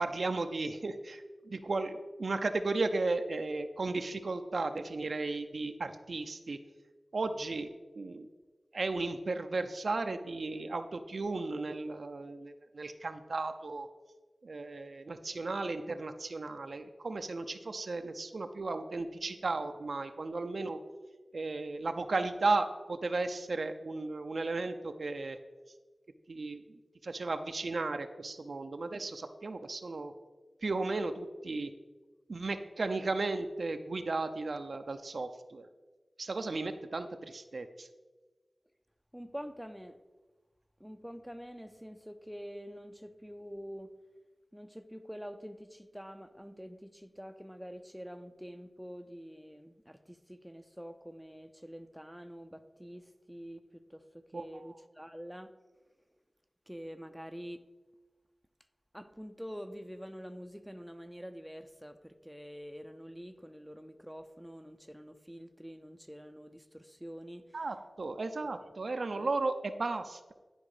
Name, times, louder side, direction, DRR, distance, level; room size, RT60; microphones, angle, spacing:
voice 1, 0.0-6.6 7.1-7.7 7.9-8.3 8.7-13.9 14.4-20.8 21.3-25.4 26.3-30.1 30.6-31.7 32.3-35.7 36.2-37.9 54.3-54.7 67.5-70.3, right 3 dB, 70° right, 0.6 m, -35 dB
voice 2, 39.1-40.0 40.8-43.9 44.5-55.5 56.7-57.7 58.9-67.6 68.4-68.5 69.1-69.3, equal, ahead, 0.6 m, -46 dB
10.5 x 5.1 x 4.9 m
cardioid pair, 45°, 0 cm